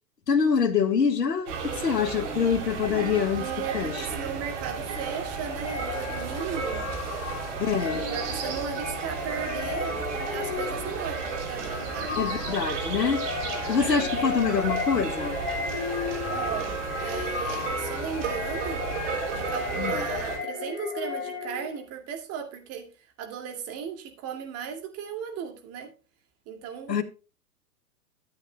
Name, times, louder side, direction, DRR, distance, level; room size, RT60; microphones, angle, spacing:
voice 1, 0.3-3.4 3.7-3.9 7.6-8.0 12.2-13.2 13.7-15.4 19.8-20.1 26.9-27.0, left 6 dB, 80° left, 1.6 m, -25 dB
sound 1, 1.5-20.4, right 5 dB, 45° right, 3.1 m, -33 dB
voice 2, 3.4-6.9 7.8-12.2 13.9-14.3 16.3-18.9 19.3-22.9 23.2-25.9 26.5-27.0, right 7 dB, 30° right, 2.4 m, -36 dB
sound 2, 5.6-21.8, left 5 dB, 45° left, 2.0 m, -35 dB
13.0 x 8.9 x 2.2 m
figure-of-eight pair, 115°, 48 cm